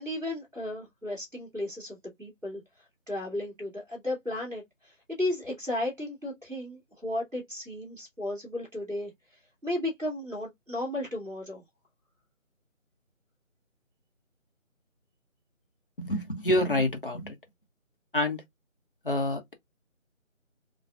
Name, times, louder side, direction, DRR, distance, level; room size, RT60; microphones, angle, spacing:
voice 1, 0.0-11.6, left 1 dB, ahead, 1.2 m, -34 dB
voice 2, 16.0-17.4 18.1-18.4 19.0-19.5, left 1 dB, 40° left, 1.0 m, -27 dB
4.2 x 2.4 x 2.4 m
figure-of-eight pair, 160°, 39 cm